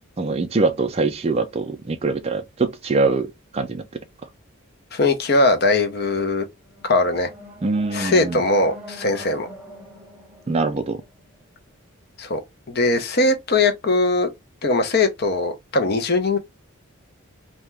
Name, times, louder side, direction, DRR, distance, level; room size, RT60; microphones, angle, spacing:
voice 1, 0.2-4.0 7.6-8.4 10.5-11.0, right 3 dB, 30° right, 0.3 m, -23 dB
voice 2, 4.9-6.4 6.8-7.3 7.9-9.5 12.2-12.4 12.7-14.3 14.6-16.4, left 2 dB, 50° left, 0.6 m, -20 dB
sound 1, 6.5-11.6, equal, 5° right, 0.7 m, -42 dB
2.7 x 2.2 x 3.2 m
head